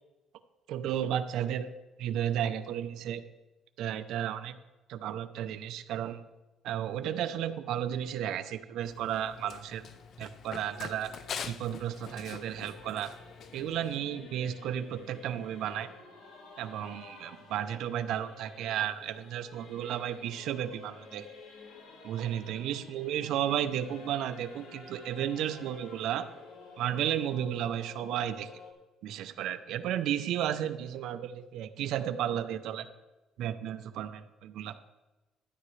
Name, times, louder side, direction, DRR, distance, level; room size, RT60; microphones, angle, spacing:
voice 1, 0.7-1.7 2.0-3.2 3.8-4.6 4.9-6.2 6.6-9.8 10.2-11.1 11.4-13.1 13.5-15.9 16.6-21.3 22.0-26.3 26.8-28.5 29.0-32.9 33.4-34.8, right 10 dB, 75° right, 11 dB, 0.6 m, -33 dB
Run, 8.8-14.0, left 7 dB, 50° left, 0.5 m, -44 dB
Singing / Musical instrument, 9.4-28.7, left 4 dB, 80° left, 2.0 m, -52 dB
12.5 x 10.5 x 3.3 m, 1.1 s
cardioid pair, 130°, 0 cm